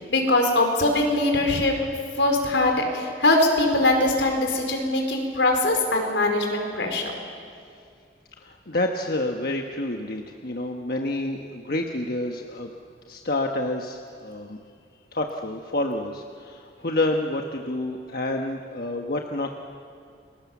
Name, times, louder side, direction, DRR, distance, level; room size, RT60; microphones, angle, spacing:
voice 1, 0.0-1.7 2.2-7.1, left 2 dB, 85° left, 3 dB, 4.4 m, -22 dB
voice 2, 8.4-12.7 13.1-14.6 15.1-19.6, left 2 dB, 55° left, 2 dB, 1.3 m, -28 dB
30.0 x 22.5 x 7.3 m, 2.4 s
head